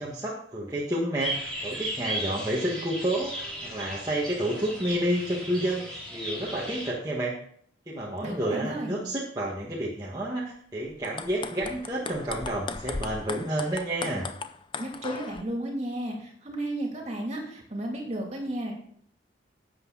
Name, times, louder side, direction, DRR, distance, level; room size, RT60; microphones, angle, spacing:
voice 1, 0.0-7.3 7.9-14.3, right 1 dB, 20° right, -6 dB, 1.7 m, -30 dB
sound 1, 1.2-6.9, equal, 5° left, 4.4 m, -36 dB
voice 2, 8.2-9.1 14.8-18.7, right 1 dB, 35° right, 0 dB, 2.8 m, -33 dB
sound 2, 10.9-15.4, left 4 dB, 25° left, 0.5 m, -37 dB
12.0 x 8.2 x 4.1 m, 0.62 s
head